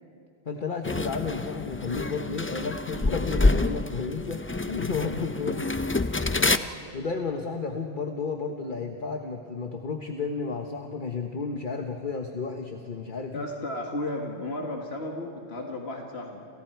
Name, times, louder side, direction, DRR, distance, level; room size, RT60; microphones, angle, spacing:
voice 1, 0.4-6.1 6.4-6.6 6.9-13.5, left 4 dB, 55° left, 3 dB, 1.3 m, -32 dB
sound 1, 0.8-6.6, left 2 dB, 20° left, 0.4 m, -27 dB
voice 2, 13.3-16.5, left 1 dB, 80° left, 1 dB, 2.1 m, -34 dB
29.5 x 29.0 x 4.6 m, 2.3 s
omnidirectional pair, 1.1 m